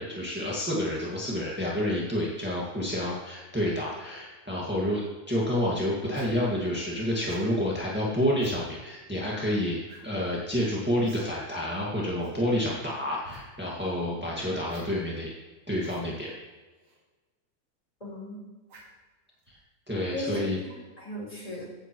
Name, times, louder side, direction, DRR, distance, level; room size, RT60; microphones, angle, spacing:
voice 1, 0.0-15.3 15.7-16.3 19.5-19.6 19.9-20.6, left 1 dB, 5° right, -5 dB, 0.8 m, -29 dB
sound 1, 6.1-6.4 7.3-7.5 8.4-8.6 9.9-10.0 10.3-10.4 11.0-11.3 11.5-11.6 12.2-12.4 13.2-13.4 14.7-14.8 15.8-16.0 16.8-17.0 18.7-19.0 19.4-19.6, right 2 dB, 55° right, 3.4 m, -50 dB
voice 2, 18.0-18.4 20.1-21.6, left 1 dB, 10° left, -5 dB, 3.9 m, -36 dB
15.5 x 9.0 x 3.1 m, 1.3 s
omnidirectional pair, 3.5 m